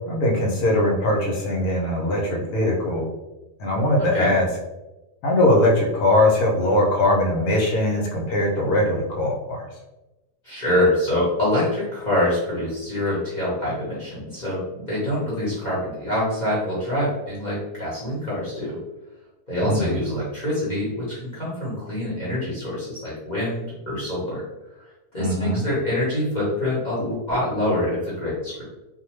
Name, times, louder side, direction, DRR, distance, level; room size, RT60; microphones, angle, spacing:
voice 1, 0.1-3.1 3.6-4.5 5.2-9.6 19.6-19.9 25.2-25.6, left 1 dB, 70° left, -1 dB, 1.1 m, -21 dB
voice 2, 4.0-4.3 10.4-18.7 19.5-24.4 24.8-28.6, left 1 dB, 35° left, -8 dB, 0.9 m, -25 dB
2.5 x 2.2 x 3.0 m, 1.0 s
omnidirectional pair, 1.7 m